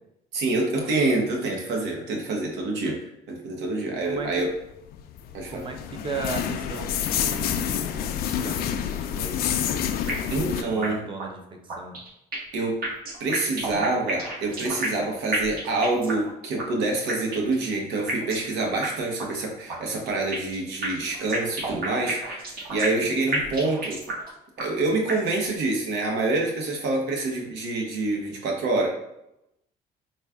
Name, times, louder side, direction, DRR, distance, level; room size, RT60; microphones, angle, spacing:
voice 1, 0.3-3.0 3.3-4.5 5.3-5.6 10.3-11.0 12.5-12.8 13.2-24.0 24.6-28.9, right 2 dB, 85° right, 1 dB, 1.0 m, -26 dB
voice 2, 3.9-4.5 5.5-9.8 10.1-11.9, right 4 dB, 30° right, 3 dB, 0.7 m, -37 dB
sound 1, 4.7-10.6, left 9 dB, 65° left, 0.4 m, -28 dB
sound 2, 10.1-10.5 10.8-10.9 11.2-11.3 11.7-12.6 12.8-15.1 15.3-16.3 16.6-16.7 17.1-17.6 18.1-18.5 18.8-18.9 19.2-19.3 19.7-20.6 20.8-23.1 23.3-24.3 24.6-24.7 25.1-25.6, right 2 dB, 60° right, 1.3 m, -30 dB
4.1 x 2.3 x 3.6 m, 0.84 s
cardioid pair, 110°, 17 cm